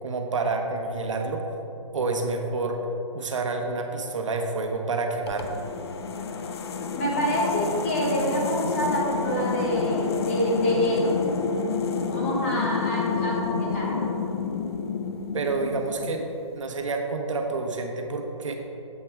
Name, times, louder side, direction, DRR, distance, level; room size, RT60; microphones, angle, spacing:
voice 1, 0.0-1.5 1.9-2.8 3.1-5.6 15.3-16.3 16.5-18.5, right 3 dB, 65° right, 3 dB, 1.0 m, -28 dB
sound 1, 5.3-16.3, left 5 dB, 50° left, 0.6 m, -29 dB
voice 2, 7.0-11.1 12.1-14.1, equal, 25° left, -4 dB, 1.4 m, -26 dB
8.8 x 7.7 x 3.5 m, 2.9 s
hypercardioid pair, 170°, 17 cm